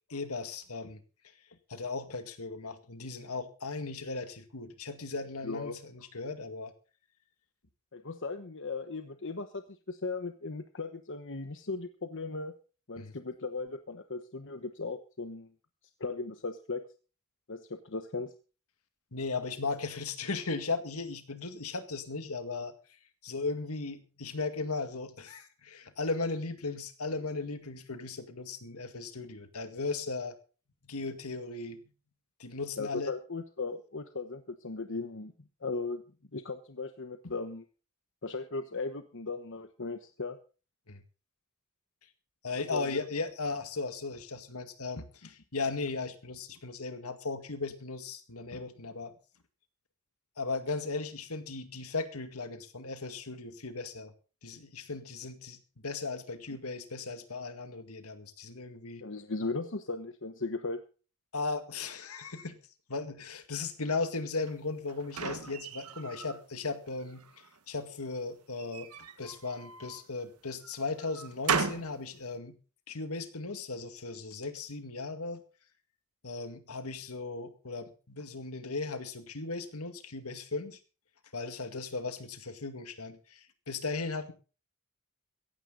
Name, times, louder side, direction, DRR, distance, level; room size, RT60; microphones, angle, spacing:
voice 1, 0.1-1.0 1.7-6.7 13.0-13.1 19.1-22.7 23.2-30.4 30.8-31.8 32.4-33.1 37.2-37.3 40.9-41.0 42.4-49.1 50.4-54.1 54.4-59.1 61.3-62.6 62.9-67.2 67.7-72.6 72.9-75.4 76.2-80.8 81.3-84.3, left 3 dB, 75° left, 9 dB, 2.1 m, -37 dB
voice 2, 5.4-5.8 7.9-12.5 12.9-15.5 16.0-16.8 17.5-18.3 32.8-35.3 35.6-36.0 36.3-37.6 38.2-40.4 42.7-43.0 59.0-60.8, left 3 dB, 55° left, 8 dB, 1.1 m, -37 dB
sound 1, 64.5-66.4 66.9-67.6 68.6-70.1 70.6-72.0, right 5 dB, 90° right, 1.6 m, -36 dB
16.0 x 15.5 x 3.9 m, 0.36 s
head